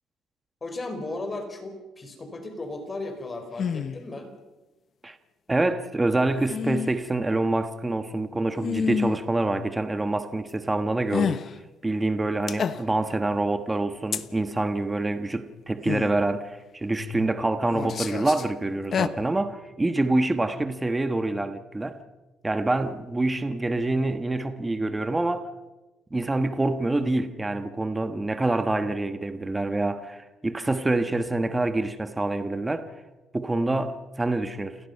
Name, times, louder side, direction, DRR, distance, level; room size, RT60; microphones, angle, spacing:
voice 1, 0.6-4.3, left 2 dB, 25° left, 5.1 m, -35 dB
sound 1, 3.6-4.0 6.4-6.9 8.6-9.2 11.1-11.5 12.5-13.1 14.1-14.2 15.9-16.1 16.9-17.3 17.7-18.5 18.8-19.1, left 7 dB, 45° left, 1.0 m, -28 dB
voice 2, 5.5-11.4 11.8-22.0 22.4-25.5 26.1-32.9 33.3-34.8, right 2 dB, 15° right, 1.3 m, -26 dB
29.0 x 17.5 x 5.6 m
cardioid pair, 115°, 0 cm